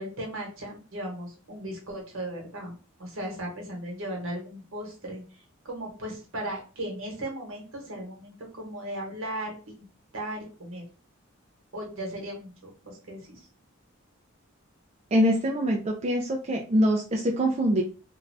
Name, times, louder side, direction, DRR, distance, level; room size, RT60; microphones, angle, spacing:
voice 1, 0.0-2.7 3.0-9.8 10.1-10.8 11.7-13.5, right 1 dB, 70° right, 0 dB, 1.1 m, -37 dB
voice 2, 15.1-17.8, equal, 30° right, 1 dB, 0.3 m, -24 dB
2.5 x 2.3 x 3.2 m, 0.36 s
head